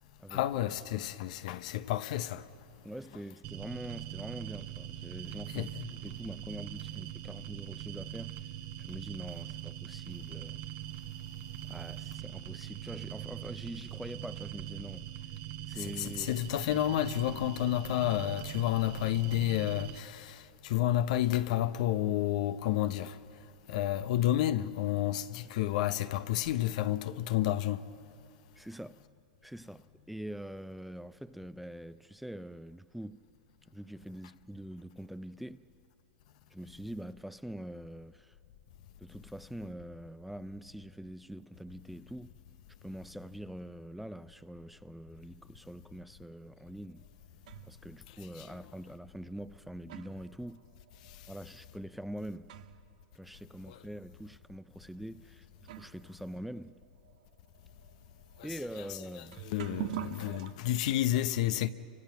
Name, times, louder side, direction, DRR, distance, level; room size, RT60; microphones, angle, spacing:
voice 1, 0.3-2.5 5.5-5.9 15.8-23.2 23.7-27.9 48.4-48.5 51.1-51.2 53.7-53.8 59.4-61.7, left 13 dB, 60° left, 0.9 m, -30 dB
voice 2, 2.8-8.5 8.8-10.6 11.7-15.1 15.7-16.3 25.4-25.5 28.6-29.0 29.4-33.2 33.7-35.7 36.5-38.4 39.0-42.3 42.8-47.0 47.7-50.7 51.3-52.5 53.1-55.5 55.7-56.8 58.4-59.4, right 1 dB, ahead, 0.6 m, -44 dB
sound 1, 3.4-20.0, right 12 dB, 45° right, 1.3 m, -42 dB
sound 2, 46.8-47.9 48.8-48.9 49.5-53.0 53.3-53.4 54.2-54.3 55.2-55.3 55.6-60.5, right 13 dB, 65° right, 1.1 m, -45 dB
30.0 x 25.0 x 5.9 m
hypercardioid pair, 105°, 4 cm